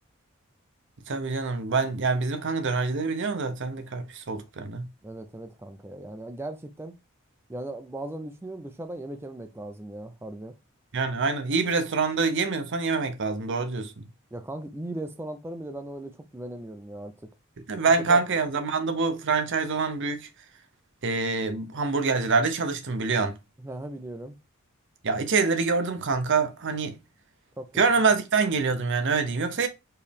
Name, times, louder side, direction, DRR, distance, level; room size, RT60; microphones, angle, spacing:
voice 1, 1.1-4.9 10.9-13.9 17.7-20.3 21.0-23.3 25.0-27.0 27.8-29.7, right 4 dB, 60° right, 0.7 m, -25 dB
voice 2, 5.0-6.9 7.5-10.5 14.3-17.1 17.8-18.2 23.6-24.4 27.6-27.8, right 1 dB, 10° right, 0.4 m, -38 dB
4.5 x 3.0 x 3.4 m
head